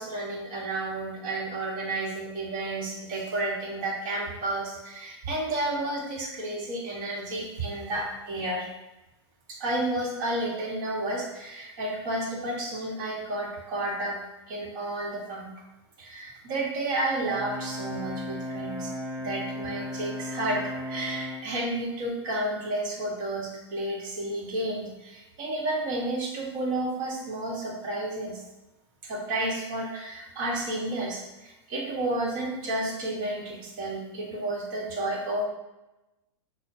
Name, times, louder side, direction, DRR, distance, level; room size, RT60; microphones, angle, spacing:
voice 1, 0.0-8.7 9.5-14.2 14.5-15.5 16.0-28.4 29.0-35.5, right 1 dB, 50° right, -2 dB, 1.3 m, -31 dB
Brass instrument, 17.2-21.5, left 1 dB, 75° right, 0.9 m, -35 dB
6.2 x 2.2 x 2.6 m, 1.0 s
hypercardioid pair, 100°, 15 cm